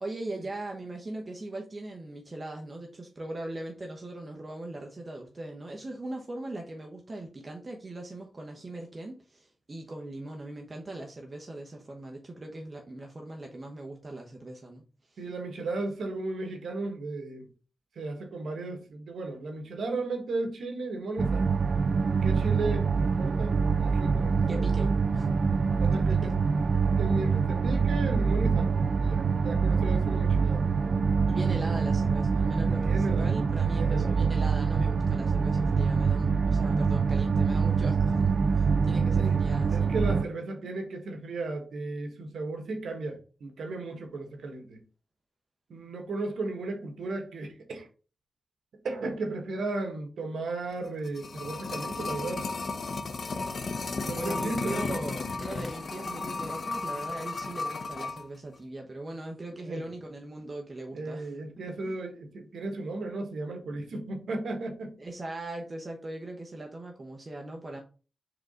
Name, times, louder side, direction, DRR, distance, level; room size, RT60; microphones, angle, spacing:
voice 1, 0.0-15.2 24.5-25.3 25.8-26.3 31.3-39.9 54.2-61.3 61.8-61.9 65.0-67.8, right 2 dB, 35° right, 1.0 m, -40 dB
voice 2, 15.2-17.5 17.9-21.5 22.2-24.9 25.8-26.3 27.0-28.7 29.0-30.6 31.3-31.8 32.7-33.4 33.6-34.2 39.1-39.3 39.7-44.8 45.7-47.9 48.8-52.4 54.0-55.0 59.6-59.8 60.9-64.9, right 2 dB, 85° right, 1.5 m, -35 dB
sound 1, 21.2-40.2, right 5 dB, 55° right, 0.3 m, -25 dB
sound 2, 23.4-36.8, left 2 dB, 20° left, 2.5 m, -45 dB
sound 3, 50.8-58.2 58.5-58.6, left 3 dB, 55° left, 0.7 m, -34 dB
4.8 x 3.9 x 5.0 m
cardioid pair, 90°, 0 cm